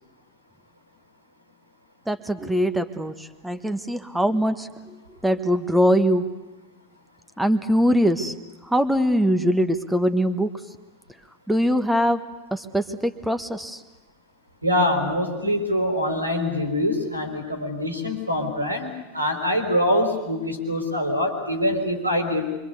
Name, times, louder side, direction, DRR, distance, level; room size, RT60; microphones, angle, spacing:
voice 1, 2.1-5.0 5.2-6.3 7.4-8.3 8.6-10.5 11.5-12.2 12.5-13.8, equal, 5° right, 10 dB, 1.5 m, -22 dB
voice 2, 14.6-22.6, left 1 dB, 90° right, 5 dB, 4.4 m, -24 dB
26.5 x 24.5 x 8.3 m, 1.1 s
figure-of-eight pair, 85°, 0 cm